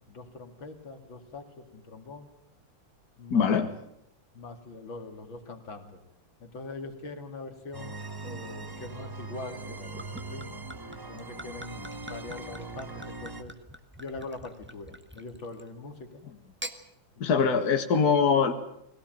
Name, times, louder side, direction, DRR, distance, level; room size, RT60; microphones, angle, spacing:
voice 1, 0.0-2.3 3.2-3.7 4.3-6.0 6.4-10.5 11.1-13.5 14.0-16.2 17.2-17.6, left 3 dB, 80° left, 5 dB, 3.2 m, -42 dB
voice 2, 3.3-3.7 17.2-18.5, left 6 dB, 55° left, 5 dB, 1.9 m, -22 dB
sound 1, 7.7-13.4, right 3 dB, 25° right, 0.4 m, -41 dB
Gurgling / Chink clink / Liquid, 9.6-15.7 16.4-16.8, right 1 dB, 5° right, 1.0 m, -45 dB
21.5 x 17.5 x 9.1 m, 0.76 s
omnidirectional pair, 2.1 m